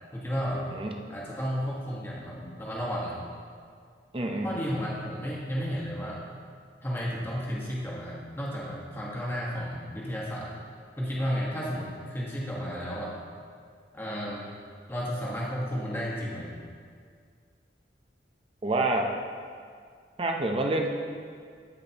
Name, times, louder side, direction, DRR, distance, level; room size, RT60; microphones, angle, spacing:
voice 1, 0.1-0.7 1.1-3.2 4.4-6.2 6.8-10.6 11.0-13.2 13.9-14.5 14.9-16.5, equal, 10° left, -5 dB, 1.3 m, -33 dB
voice 2, 4.1-4.7 18.6-19.1 20.2-20.9, right 2 dB, 30° right, 2 dB, 0.6 m, -27 dB
15.0 x 5.0 x 2.9 m, 2.1 s
head